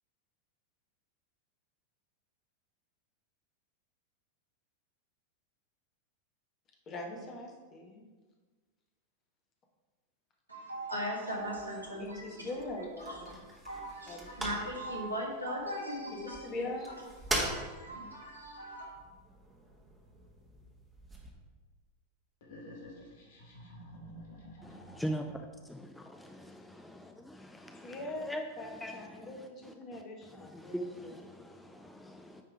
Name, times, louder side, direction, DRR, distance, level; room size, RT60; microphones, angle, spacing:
voice 1, 6.9-8.0 12.0-13.3 14.1-14.3 16.1-16.9 27.8-30.7, left 2 dB, 30° left, 1 dB, 1.5 m, -42 dB
voice 2, 10.5-17.0 17.3-19.0, equal, 85° right, -3 dB, 1.6 m, -39 dB
Folding chair clinking, 11.3-21.3, right 1 dB, 10° right, 1.5 m, -42 dB
sound 1, 22.4-25.5, equal, 55° left, 1.5 m, -50 dB
voice 3, 24.6-32.4, equal, 5° left, 4 dB, 0.5 m, -42 dB
9.0 x 3.7 x 4.9 m, 1.4 s
figure-of-eight pair, 90°, 0 cm